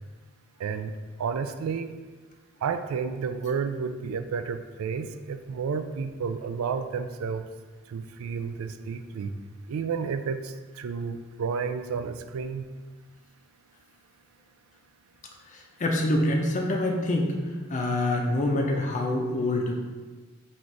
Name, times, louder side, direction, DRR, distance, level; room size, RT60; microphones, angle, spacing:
voice 1, 0.6-0.9 1.2-1.9 2.6-7.5 7.9-9.3 9.7-12.7, right 6 dB, 75° right, 9 dB, 0.3 m, -31 dB
voice 2, 15.8-17.3 17.7-19.7, left 1 dB, 35° left, 1 dB, 0.6 m, -25 dB
4.1 x 2.5 x 4.6 m, 1.3 s
head